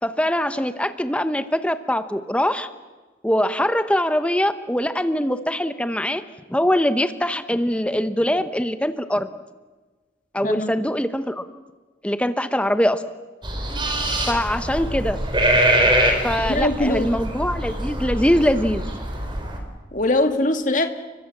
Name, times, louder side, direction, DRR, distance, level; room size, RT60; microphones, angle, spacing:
voice 1, 0.0-2.7 3.2-6.2 6.5-9.3 10.3-11.4 12.0-13.0 14.3-15.2 16.2-18.8, equal, 5° left, 10 dB, 0.9 m, -22 dB
voice 2, 10.4-10.8 16.5-17.1 19.9-20.9, left 2 dB, 45° left, 7 dB, 2.3 m, -21 dB
sound 1, 13.4-19.6, right 1 dB, 25° right, 4.2 m, -23 dB
30.0 x 24.0 x 7.3 m, 1.3 s
head